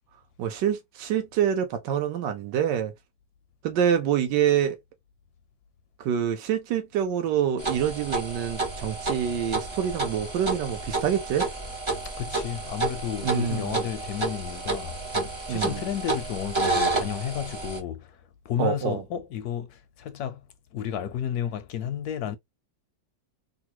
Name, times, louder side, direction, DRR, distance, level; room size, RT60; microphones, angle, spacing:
voice 1, 0.4-2.9 3.6-4.8 6.0-11.5 13.2-13.8 15.5-15.8 18.6-19.0, right 9 dB, 80° right, 1.4 m, -26 dB
sound 1, 7.6-17.8, right 3 dB, 40° right, 0.4 m, -30 dB
voice 2, 12.0-18.2 18.4-20.4 20.7-22.4, left 9 dB, 70° left, 1.0 m, -32 dB
3.7 x 2.3 x 2.8 m
omnidirectional pair, 1.9 m